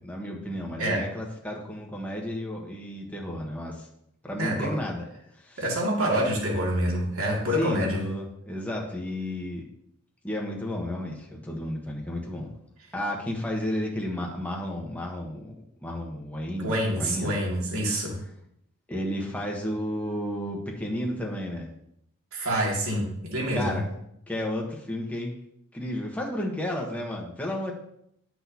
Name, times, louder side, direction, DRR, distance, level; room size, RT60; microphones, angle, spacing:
voice 1, 0.0-3.9 4.2-5.1 5.3-5.7 7.5-9.6 10.2-12.5 12.9-15.5 15.8-17.4 18.9-21.7 23.5-23.8 24.3-25.3 25.7-27.7, left 1 dB, 5° left, -1 dB, 1.0 m, -32 dB
voice 2, 4.4-4.8 5.6-8.0 16.6-18.2 22.3-23.8, equal, 75° right, -3 dB, 2.3 m, -27 dB
11.0 x 6.1 x 2.8 m, 0.75 s
head